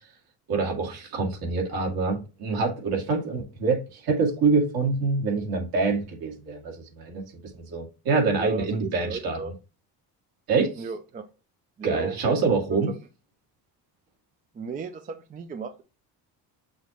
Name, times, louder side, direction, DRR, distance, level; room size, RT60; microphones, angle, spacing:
voice 1, 0.5-7.2 7.6-9.4 10.5-10.8 11.8-12.9, right 4 dB, 60° right, 2.3 m, -25 dB
voice 2, 8.2-9.5 10.8-11.3 11.8-13.0 14.5-15.8, right 5 dB, 20° right, 0.4 m, -36 dB
6.3 x 3.0 x 5.0 m
cardioid pair, 160°, 41 cm